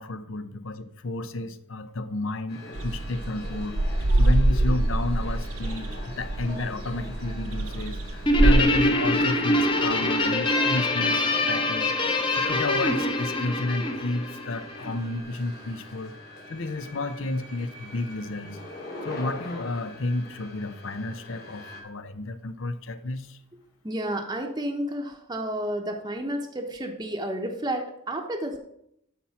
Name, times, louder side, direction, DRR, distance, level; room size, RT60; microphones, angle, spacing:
voice 1, 0.0-3.8 4.2-11.9 12.3-16.1 16.5-18.6 19.0-23.4, left 2 dB, 65° left, 11 dB, 0.7 m, -31 dB
sound 1, 2.5-21.8, left 2 dB, 50° left, 2.4 m, -44 dB
sound 2, 2.8-8.6, right 1 dB, 90° right, 0.8 m, -24 dB
Guitar, 8.3-14.9, left 1 dB, 25° left, 0.9 m, -24 dB
voice 2, 23.8-28.6, right 1 dB, 20° right, 2 dB, 0.8 m, -31 dB
12.5 x 4.4 x 5.8 m, 0.75 s
head